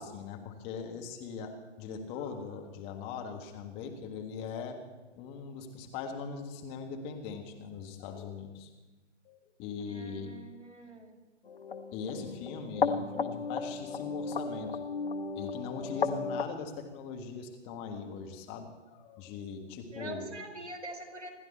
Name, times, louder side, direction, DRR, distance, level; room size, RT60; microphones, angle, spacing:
voice 1, 0.0-4.8 5.2-8.7 9.2-10.3 11.9-14.9 15.3-20.3, left 5 dB, 15° left, 3 dB, 1.5 m, -40 dB
voice 2, 9.8-11.1 19.9-21.3, right 2 dB, 70° right, 2 dB, 5.4 m, -44 dB
sound 1, 11.4-16.4, left 5 dB, 50° left, 0.9 m, -34 dB
27.0 x 11.5 x 4.3 m, 1.2 s
figure-of-eight pair, 140°, 36 cm